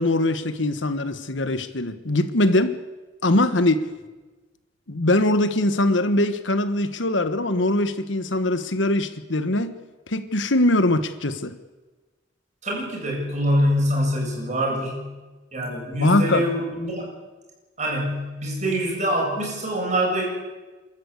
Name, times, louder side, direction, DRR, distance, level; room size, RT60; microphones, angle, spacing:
voice 1, 0.0-2.8 3.2-3.9 4.9-9.7 10.1-11.6 16.0-16.4, left 1 dB, 75° left, 11 dB, 1.4 m, -22 dB
voice 2, 12.6-15.1 15.5-17.1 17.8-20.2, equal, 40° right, -2 dB, 7.7 m, -24 dB
30.0 x 13.5 x 8.3 m, 1.3 s
head